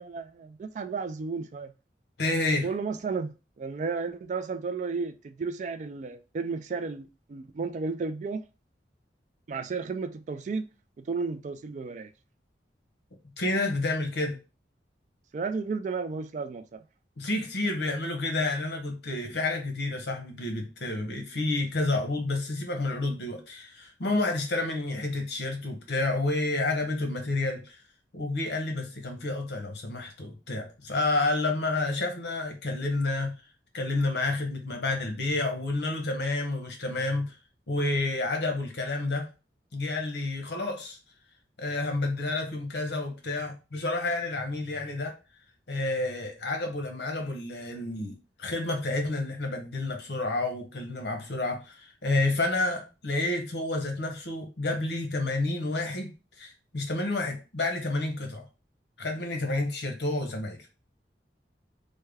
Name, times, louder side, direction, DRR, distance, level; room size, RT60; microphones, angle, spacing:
voice 1, 0.0-1.7 2.6-8.4 9.5-10.7 11.0-12.1 15.3-16.8, right 4 dB, 45° right, 0.3 m, -33 dB
voice 2, 2.2-2.7 13.4-14.4 17.2-27.8 28.1-33.3 33.7-37.4 37.7-39.3 39.7-41.0 41.6-45.1 45.7-56.1 56.4-58.4 59.0-60.6, left 2 dB, 70° left, 0.9 m, -30 dB
3.3 x 2.2 x 3.3 m
head